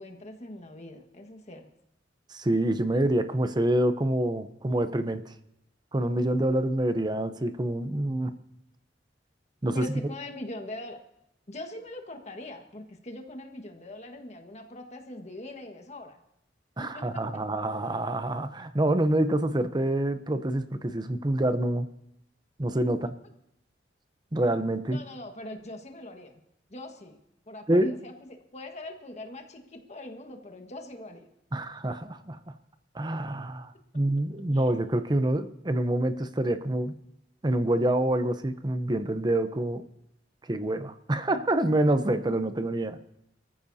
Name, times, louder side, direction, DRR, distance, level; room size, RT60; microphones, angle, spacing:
voice 1, 0.0-1.7 9.7-11.0 11.5-16.2 16.8-17.2 24.9-26.4 26.7-27.2 27.5-31.3 34.5-34.7, left 1 dB, 40° left, 4 dB, 1.6 m, -42 dB
voice 2, 2.3-5.3 5.9-8.3 9.6-9.9 16.8-21.9 22.6-23.1 24.3-25.0 27.7-28.0 31.5-32.4 32.9-36.9 37.4-39.8 40.5-43.0, right 1 dB, 25° right, 10 dB, 0.7 m, -26 dB
24.0 x 14.5 x 2.8 m, 0.80 s
head